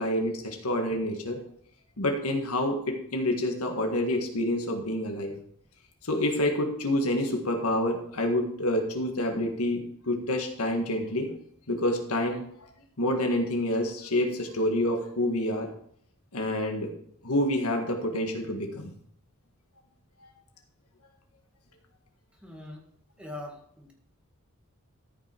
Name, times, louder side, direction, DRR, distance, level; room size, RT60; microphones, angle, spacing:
voice 1, 0.0-1.4 2.0-5.3 6.0-11.3 11.7-12.7 13.0-15.7 16.3-16.9 17.2-18.9 20.2-20.3, left 1 dB, 85° left, 4 dB, 1.7 m, -28 dB
voice 2, 22.4-22.9 23.2-23.9, left 1 dB, 5° right, 0 dB, 1.8 m, -42 dB
13.5 x 5.7 x 4.5 m, 0.65 s
head